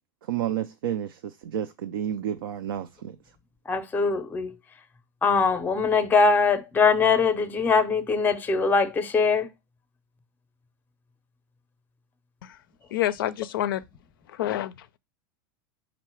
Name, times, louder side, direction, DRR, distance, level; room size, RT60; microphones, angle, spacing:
voice 1, 0.3-3.2, right 10 dB, 90° right, 0.4 m, -30 dB
voice 2, 3.7-4.6 5.2-9.5, left 4 dB, 15° left, 0.5 m, -22 dB
voice 3, 12.9-13.8 14.3-14.7, left 13 dB, 80° left, 0.4 m, -27 dB
4.6 x 2.1 x 4.3 m
hypercardioid pair, 115°, 11 cm